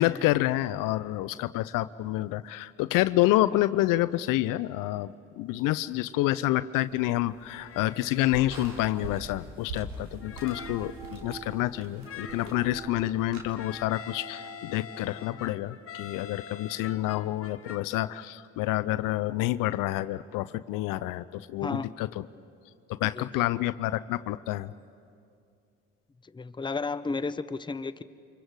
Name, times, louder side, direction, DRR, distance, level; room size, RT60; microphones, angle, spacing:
voice 1, 0.0-22.2 23.0-24.7, left 16 dB, 60° left, 0.6 m, -28 dB
sound 1, 6.8-13.5, right 2 dB, 75° right, 3.6 m, -44 dB
sound 2, 7.5-8.8 9.3-9.4 10.2-11.1 12.0-12.6 13.5-17.8, left 8 dB, 35° left, 1.2 m, -45 dB
sound 3, 10.2-15.5, right 6 dB, 10° right, 1.5 m, -47 dB
voice 2, 21.6-21.9 23.0-23.5 26.2-28.0, left 4 dB, 10° left, 0.7 m, -33 dB
29.0 x 25.0 x 4.8 m
hypercardioid pair, 55°, 37 cm